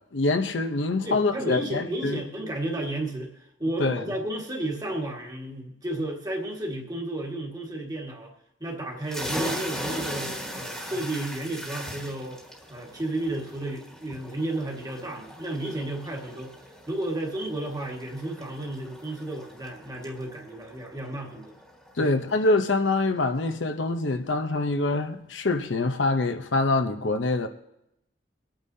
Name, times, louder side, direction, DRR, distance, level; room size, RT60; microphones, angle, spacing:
voice 1, 0.1-2.2 3.8-4.0 22.0-27.5, left 2 dB, 80° left, 0.8 m, -25 dB
voice 2, 1.0-8.3 8.6-12.4 12.7-16.5 16.9-21.6 22.0-22.1, right 1 dB, 20° right, 1.6 m, -32 dB
sound 1, 9.1-22.4, equal, ahead, 1.5 m, -39 dB
23.0 x 8.9 x 2.7 m
head